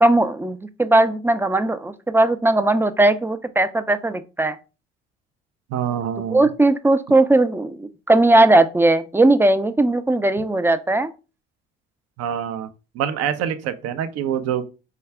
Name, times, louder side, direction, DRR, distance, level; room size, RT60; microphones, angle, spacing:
voice 1, 0.0-4.6 6.3-11.1, right 2 dB, 10° right, 0.4 m, -18 dB
voice 2, 5.7-6.5 12.2-12.7 12.9-14.6, right 9 dB, 55° right, 0.6 m, -25 dB
4.6 x 2.3 x 3.3 m
hypercardioid pair, 55°, 29 cm